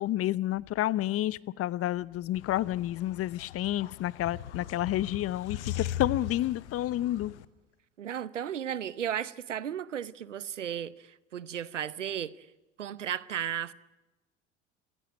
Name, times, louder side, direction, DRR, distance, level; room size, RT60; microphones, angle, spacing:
voice 1, 0.0-7.3, left 14 dB, 40° left, 0.8 m, -30 dB
sound 1, 2.3-7.4, left 11 dB, 70° left, 1.1 m, -39 dB
voice 2, 8.0-12.3 12.8-13.7, right 9 dB, 85° right, 0.8 m, -34 dB
27.0 x 16.0 x 8.9 m
figure-of-eight pair, 65°, 36 cm